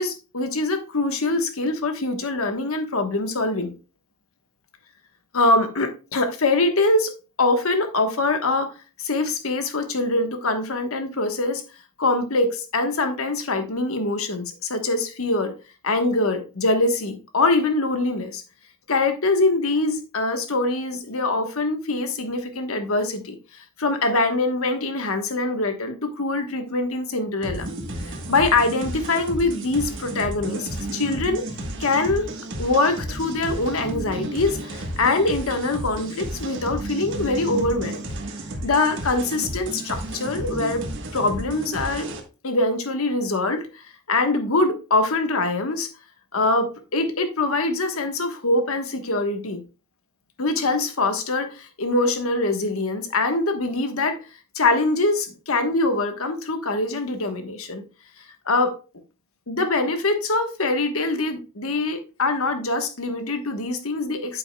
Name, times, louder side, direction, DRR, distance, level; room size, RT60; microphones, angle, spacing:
voice 1, 0.0-3.7 5.3-7.1 7.4-8.7 9.0-11.6 12.0-15.5 15.8-18.4 18.9-23.3 23.8-27.7 28.3-31.4 31.8-32.3 32.6-38.0 38.6-40.8 41.1-42.1 42.4-45.9 46.3-49.6 50.4-54.2 54.5-57.8 58.5-58.7 59.5-64.4, left 2 dB, 70° left, 1.3 m, -23 dB
sound 1, 27.4-42.2, right 1 dB, 55° right, 1.4 m, -32 dB
8.9 x 7.7 x 2.3 m
head